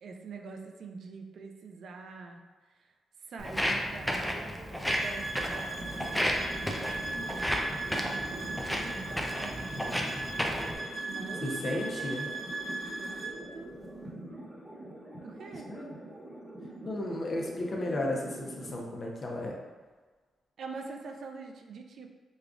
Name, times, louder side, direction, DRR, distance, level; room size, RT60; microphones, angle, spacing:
voice 1, 0.0-2.7 3.2-10.0 11.1-12.3 12.6-13.7 15.2-15.7 20.6-22.1, right 4 dB, 70° right, 3 dB, 0.4 m, -45 dB
Walk footsteps, 3.4-10.7, equal, 5° left, 0.4 m, -33 dB
sound 1, 4.8-13.4, right 2 dB, 20° left, 1.1 m, -38 dB
sound 2, 5.7-18.8, right 1 dB, 30° right, 1.0 m, -44 dB
voice 2, 11.4-12.3 15.7-15.9 16.8-19.5, left 1 dB, 40° left, -1 dB, 0.6 m, -34 dB
4.9 x 2.3 x 2.5 m, 1.4 s
cardioid pair, 95°, 0 cm